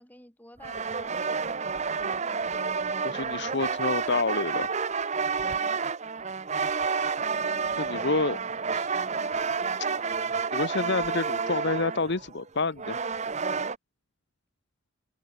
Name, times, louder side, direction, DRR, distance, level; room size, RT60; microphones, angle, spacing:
voice 1, 0.0-1.5, left 1 dB, 10° left, 5.4 m, -53 dB
sound 1, 0.6-13.8, right 5 dB, 35° right, 0.8 m, -30 dB
voice 2, 3.0-4.7 7.8-8.4 8.7-8.9 10.5-13.0, left 3 dB, 55° left, 1.0 m, -28 dB
head